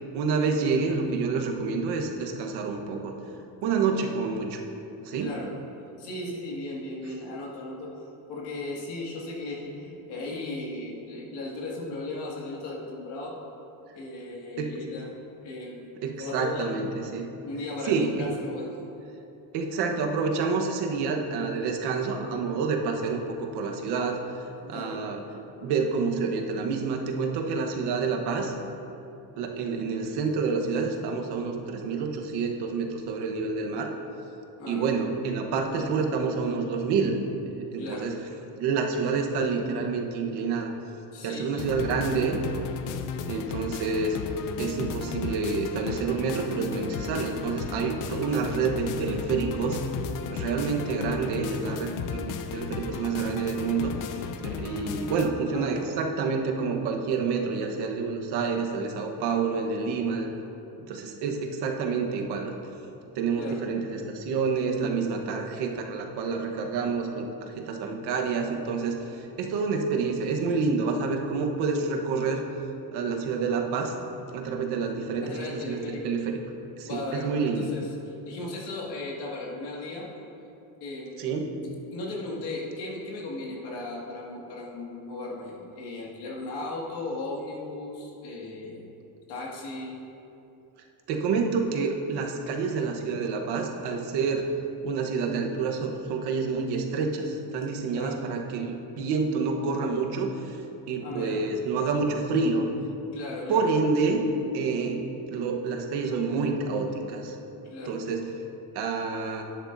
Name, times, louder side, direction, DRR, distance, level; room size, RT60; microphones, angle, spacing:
voice 1, 0.1-3.1 3.6-4.6 5.0-5.3 14.6-14.7 16.0-17.3 17.8-18.3 19.5-24.2 24.7-25.2 25.6-28.5 29.4-33.9 34.7-37.2 37.5-38.1 38.6-40.7 41.2-42.4 43.3-44.2 44.6-49.8 50.3-60.3 60.9-62.6 63.1-72.4 72.9-73.9 74.3-76.3 76.8-77.7 81.2-81.5 91.1-94.5 94.8-100.6 100.9-102.7 103.5-104.2 104.5-107.4 107.8-108.3 108.7-109.4, right 4 dB, 80° right, 2 dB, 1.2 m, -28 dB
voice 2, 5.2-5.5 6.0-8.0 8.3-13.4 13.9-15.1 15.4-15.9 16.2-16.7 17.1-18.8 24.6-25.0 34.6-35.0 35.9-36.0 37.8-38.1 41.1-41.8 55.5-55.9 63.4-63.6 75.2-76.1 76.8-80.1 80.8-81.5 81.9-88.9 89.3-90.0 97.9-98.2 101.0-101.4 103.1-103.7 107.6-108.0, left 2 dB, 80° left, -3 dB, 2.1 m, -36 dB
sound 1, 41.6-55.3, left 6 dB, 55° left, 0.6 m, -34 dB
12.5 x 9.9 x 2.7 m, 2.9 s
cardioid pair, 150°, 39 cm